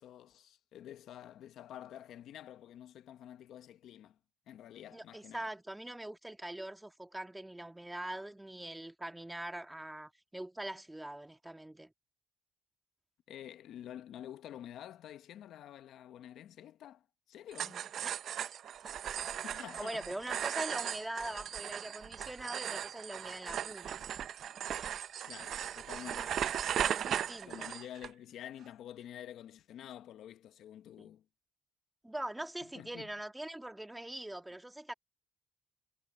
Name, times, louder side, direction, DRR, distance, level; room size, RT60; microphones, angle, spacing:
voice 1, 0.0-4.2 4.5-5.5 13.3-17.8 19.4-20.1 25.2-26.7 27.4-31.2 32.7-33.1, left 11 dB, 80° left, 1.0 m, -49 dB
voice 2, 4.9-11.9 17.6-18.1 19.7-24.0 26.9-27.7 31.0-31.1 32.0-34.9, right 1 dB, 10° right, 1.6 m, -43 dB
sound 1, 17.5-28.1, right 9 dB, 65° right, 0.5 m, -37 dB
cardioid pair, 90°, 0 cm